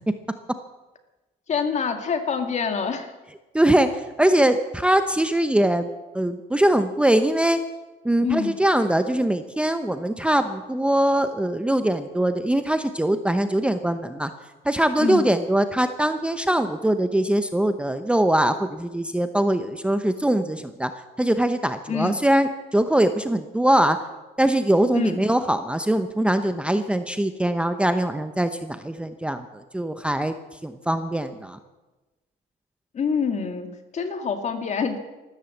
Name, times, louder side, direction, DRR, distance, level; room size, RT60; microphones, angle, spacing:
voice 1, 1.5-3.1 8.2-8.5 15.0-15.3 21.9-22.2 24.9-25.2 32.9-35.0, left 5 dB, 45° left, 7 dB, 2.2 m, -26 dB
voice 2, 3.5-5.9 6.1-7.6 8.0-14.3 14.6-20.9 21.2-24.0 24.4-30.4 30.6-31.6, right 1 dB, 5° right, 9 dB, 0.8 m, -22 dB
14.0 x 13.5 x 7.9 m, 1.1 s
cardioid pair, 110°, 17 cm